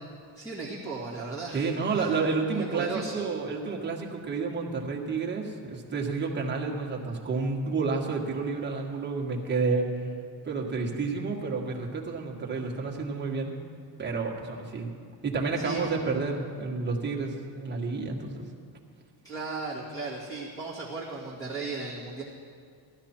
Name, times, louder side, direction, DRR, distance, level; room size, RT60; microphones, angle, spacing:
voice 1, 0.4-1.7 2.0-2.1 2.5-3.2 15.6-15.9 19.2-22.2, right 3 dB, 5° left, -7 dB, 1.9 m, -36 dB
voice 2, 1.5-9.9 10.4-13.6 14.0-14.9 15.2-18.5, right 4 dB, 20° right, -1 dB, 1.6 m, -30 dB
16.0 x 12.5 x 4.4 m, 2.1 s
cardioid pair, 155°, 46 cm